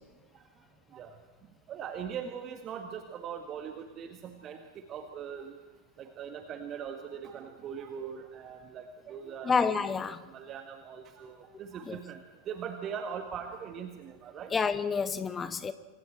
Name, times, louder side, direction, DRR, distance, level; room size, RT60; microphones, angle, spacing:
voice 1, 1.7-5.6 6.0-9.6 10.2-14.5, right 7 dB, 30° right, 1.9 m, -41 dB
voice 2, 9.4-10.2 11.9-12.0 14.5-15.7, left 5 dB, 20° left, 1.2 m, -28 dB
27.0 x 26.0 x 4.5 m
figure-of-eight pair, 90°, 0 cm